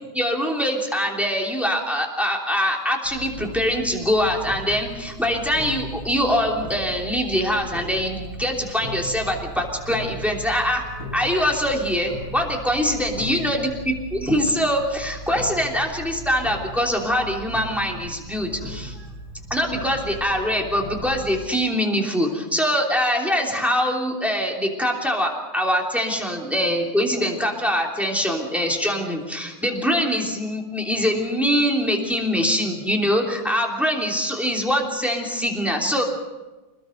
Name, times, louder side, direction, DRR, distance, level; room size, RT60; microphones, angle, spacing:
voice 1, 0.1-10.8 11.1-19.1 19.5-36.0, equal, ahead, 0 dB, 3.1 m, -23 dB
Clock, 3.0-21.5, equal, 75° left, 8.4 m, -37 dB
26.5 x 20.5 x 5.3 m, 1.2 s
omnidirectional pair, 2.3 m